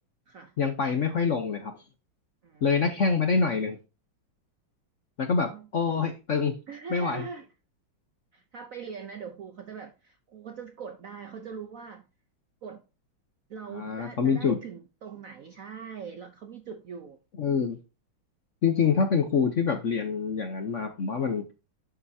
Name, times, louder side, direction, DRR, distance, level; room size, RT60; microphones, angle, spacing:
voice 1, 0.6-1.8 2.6-3.8 5.2-6.5 6.9-7.2 13.7-14.6 17.4-17.8 18.6-21.4, left 5 dB, 55° left, 0.9 m, -26 dB
voice 2, 6.7-7.5 8.3-12.0 12.6-12.8 13.5-17.2, right 6 dB, 65° right, 0.8 m, -41 dB
11.0 x 7.9 x 2.8 m
omnidirectional pair, 2.2 m